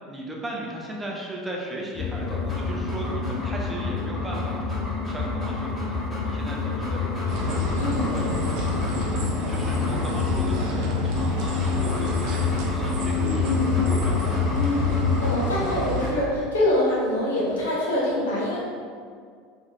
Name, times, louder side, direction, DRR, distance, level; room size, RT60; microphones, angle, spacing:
voice 1, 0.1-8.6 9.5-14.4, right 1 dB, 10° right, -3 dB, 0.8 m, -36 dB
sound 1, 2.0-15.3, left 5 dB, 35° left, 0.3 m, -27 dB
Dog, 2.2-10.4 11.0-16.4, left 1 dB, 10° left, 1.5 m, -37 dB
sound 2, 7.3-16.1, equal, 50° right, 0.7 m, -30 dB
voice 2, 7.8-8.1 13.4-13.7 14.5-18.6, left 1 dB, 70° left, -5 dB, 1.0 m, -25 dB
4.8 x 3.2 x 2.7 m, 2.1 s
figure-of-eight pair, 75°, 0 cm